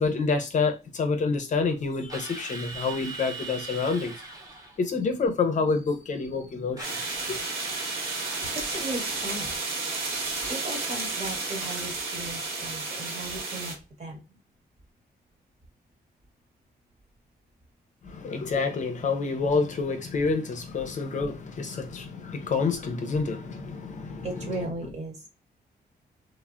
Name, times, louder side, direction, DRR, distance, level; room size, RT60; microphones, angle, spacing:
voice 1, 0.0-4.1 4.8-7.0 7.3-7.4 18.0-24.6, left 4 dB, 45° left, 0.6 m, -28 dB
Drill, 2.1-4.8 6.8-9.3, right 3 dB, 20° right, 0.6 m, -40 dB
sound 1, 6.8-13.7, right 3 dB, 65° right, 1.1 m, -32 dB
voice 2, 8.5-9.5 10.5-14.4 24.2-25.3, right 1 dB, 40° right, 1.0 m, -36 dB
3.3 x 2.0 x 2.4 m
wide cardioid pair, 140°, 18 cm